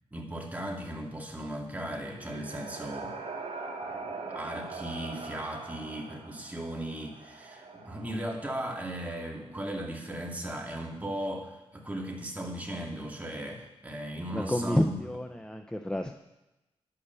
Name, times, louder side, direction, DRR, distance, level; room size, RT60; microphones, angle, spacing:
voice 1, 0.1-3.2 3.9-4.0 4.3-15.0, right 1 dB, 15° right, 0 dB, 2.3 m, -37 dB
sound 1, 1.7-9.5, right 3 dB, 75° right, 2.5 m, -42 dB
voice 2, 14.3-16.1, left 1 dB, 5° left, 6 dB, 0.6 m, -29 dB
11.0 x 8.8 x 6.9 m, 0.96 s
wide cardioid pair, 105°, 11 cm